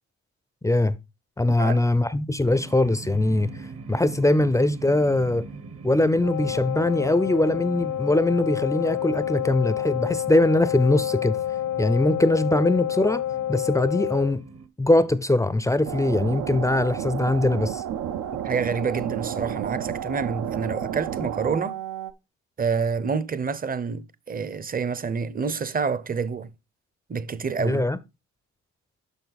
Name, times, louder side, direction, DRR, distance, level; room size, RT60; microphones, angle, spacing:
voice 1, 0.6-1.0 1.4-3.5 3.9-5.5 5.8-11.4 11.8-13.2 13.5-14.4 14.8-17.8 27.6-28.0, left 2 dB, 10° left, 0.5 m, -22 dB
sound 1, 2.4-14.7, right 4 dB, 50° right, 1.1 m, -42 dB
Wind instrument woodwind instrument, 6.2-14.4, left 12 dB, 75° left, 0.6 m, -28 dB
sound 2, 15.8-22.1, right 10 dB, 75° right, 0.7 m, -31 dB
voice 2, 18.4-21.7 22.6-26.5 27.1-27.8, right 5 dB, 30° right, 0.7 m, -28 dB
6.9 x 5.8 x 4.1 m
cardioid pair, 90°, 30 cm